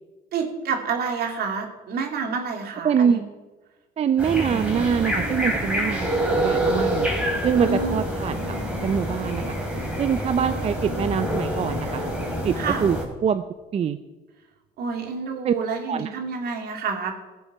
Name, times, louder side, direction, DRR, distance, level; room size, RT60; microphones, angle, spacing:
voice 1, 0.3-3.2 7.7-8.0 12.5-12.8 14.8-17.1, right 5 dB, 65° right, 3 dB, 2.5 m, -28 dB
voice 2, 2.8-3.2 4.0-7.1 7.4-8.4 8.8-9.6 10.0-12.0 12.4-12.5 12.8-13.0 13.2-13.4 13.7-14.0 15.4-15.5 15.9-16.1, right 7 dB, 40° right, 11 dB, 0.5 m, -24 dB
sound 1, 4.2-13.0, equal, 5° right, 3.2 m, -26 dB
16.5 x 7.0 x 5.8 m, 1.2 s
cardioid pair, 110°, 17 cm